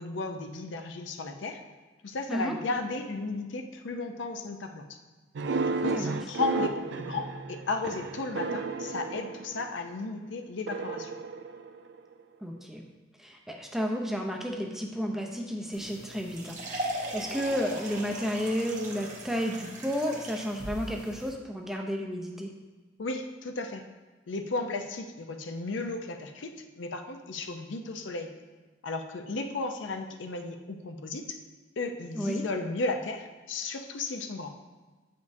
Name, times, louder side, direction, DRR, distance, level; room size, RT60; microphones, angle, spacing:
voice 1, 0.0-1.6 2.0-4.9 5.7-11.1 23.0-23.9 24.3-28.3 28.8-31.4 31.8-34.5, left 3 dB, 75° left, 5 dB, 0.5 m, -34 dB
sound 1, 5.4-9.9 10.7-12.2, right 4 dB, 65° right, 0.4 m, -33 dB
voice 2, 12.4-12.9 13.2-16.6 16.9-22.5 32.1-32.4, equal, ahead, 1 dB, 0.5 m, -32 dB
sound 2, 15.7-21.3, right 1 dB, 40° right, 1.0 m, -39 dB
8.0 x 5.2 x 2.6 m, 1.3 s
head